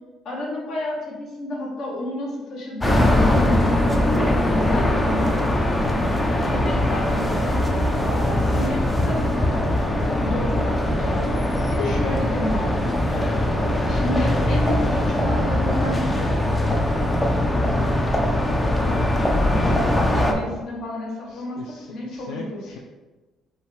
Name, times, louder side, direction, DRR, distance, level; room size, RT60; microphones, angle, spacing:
voice 1, 0.2-4.0 4.4-5.7 6.4-13.3 13.9-16.1 19.4-22.8, left 1 dB, 60° left, -3 dB, 1.2 m, -31 dB
sound 1, 2.8-20.3, left 1 dB, 10° left, 0.4 m, -21 dB
voice 2, 18.8-19.4 21.6-22.4, left 5 dB, 85° left, 1 dB, 0.4 m, -37 dB
5.2 x 2.5 x 3.3 m, 1.2 s
cardioid pair, 155°, 0 cm